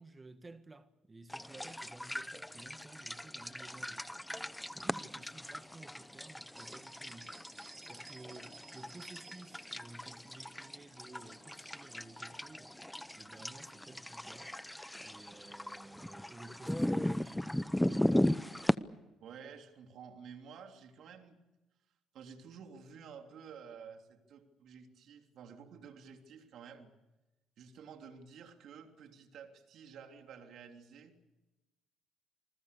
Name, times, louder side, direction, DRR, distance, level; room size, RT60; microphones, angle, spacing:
voice 1, 0.0-4.2 4.7-7.5 7.8-12.8 13.2-14.5 15.0-17.7 18.5-18.8, right 2 dB, 25° right, 1.9 m, -54 dB
sound 1, 1.3-18.7, left 1 dB, 5° left, 0.7 m, -37 dB
sound 2, 6.4-9.7, right 5 dB, 45° right, 3.3 m, -58 dB
voice 2, 19.2-21.4 22.1-26.9 27.6-31.1, right 6 dB, 70° right, 3.3 m, -52 dB
27.5 x 20.5 x 7.0 m
cardioid pair, 85°, 0 cm